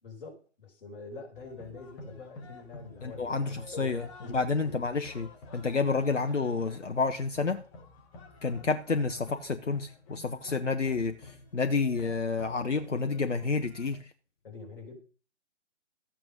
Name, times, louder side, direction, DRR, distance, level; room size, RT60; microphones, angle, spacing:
voice 1, 0.0-3.4 3.7-4.8 14.4-15.0, left 4 dB, 45° left, 5.1 m, -45 dB
sound 1, 1.4-14.0, left 2 dB, 25° left, 2.5 m, -49 dB
voice 2, 3.0-7.6 8.4-14.1, left 4 dB, 75° left, 1.1 m, -30 dB
14.0 x 9.0 x 5.1 m
figure-of-eight pair, 135°, 36 cm